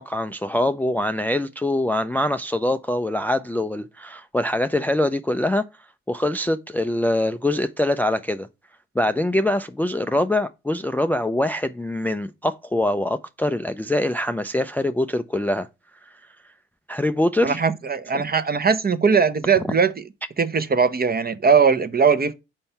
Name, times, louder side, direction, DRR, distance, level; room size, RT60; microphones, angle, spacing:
voice 1, 0.0-5.7 6.1-8.5 9.0-15.7 16.9-17.6, left 1 dB, 5° left, 0.4 m, -23 dB
voice 2, 17.4-20.0 20.4-22.3, right 5 dB, 30° right, 0.8 m, -20 dB
5.5 x 4.4 x 5.5 m
supercardioid pair, 55°, 31 cm